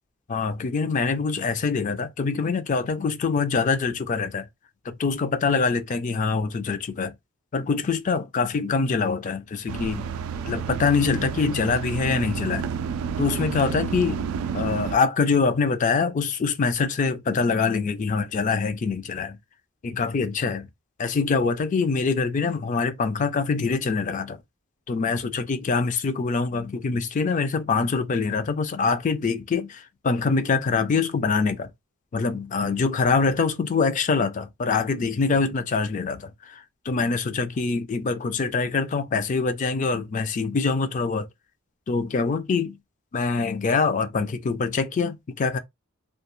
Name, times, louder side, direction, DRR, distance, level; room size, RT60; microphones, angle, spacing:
voice 1, 0.3-4.5 4.9-7.1 7.5-10.1 10.5-12.7 13.2-14.2 14.5-19.4 19.8-20.7 21.0-24.4 24.9-31.7 32.1-41.3 41.9-42.8 43.1-45.6, left 4 dB, 35° left, 0.4 m, -24 dB
sound 1, 9.7-15.0, right 7 dB, 85° right, 0.3 m, -30 dB
2.3 x 2.3 x 2.9 m
head